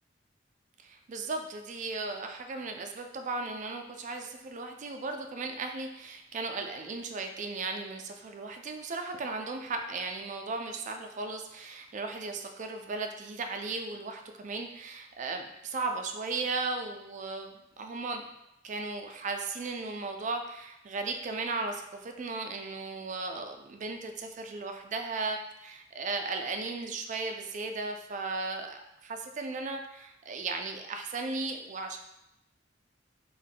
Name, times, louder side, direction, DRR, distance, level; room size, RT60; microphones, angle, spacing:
voice 1, 0.8-18.3 18.6-32.0, right 3 dB, 45° right, 5 dB, 0.4 m, -36 dB
3.4 x 2.2 x 3.8 m, 0.86 s
head